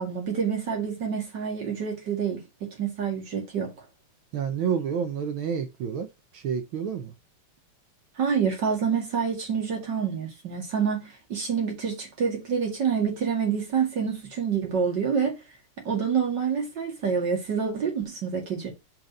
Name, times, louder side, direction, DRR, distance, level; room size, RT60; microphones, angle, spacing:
voice 1, 0.0-3.7 8.2-15.4 15.8-18.7, right 6 dB, 55° right, 2.7 m, -27 dB
voice 2, 4.3-6.1 6.3-7.1, right 7 dB, 75° right, 1.6 m, -29 dB
5.2 x 4.4 x 5.2 m
omnidirectional pair, 2.4 m